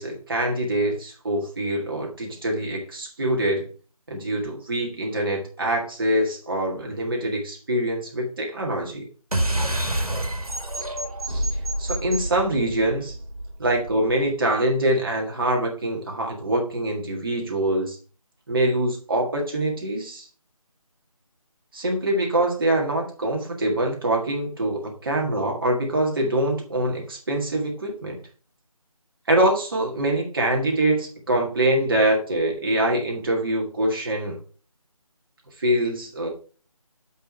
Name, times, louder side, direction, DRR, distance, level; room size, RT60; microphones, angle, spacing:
voice 1, 0.0-3.6 4.1-9.0 11.3-11.5 11.8-13.1 13.6-18.0 18.5-20.3 21.7-28.2 29.3-34.3 35.6-36.3, right 1 dB, 40° right, 1 dB, 1.7 m, -24 dB
sound 1, 9.3-14.2, right 1 dB, 90° right, 1.8 m, -28 dB
9.3 x 4.7 x 4.5 m, 0.38 s
figure-of-eight pair, 160°, 19 cm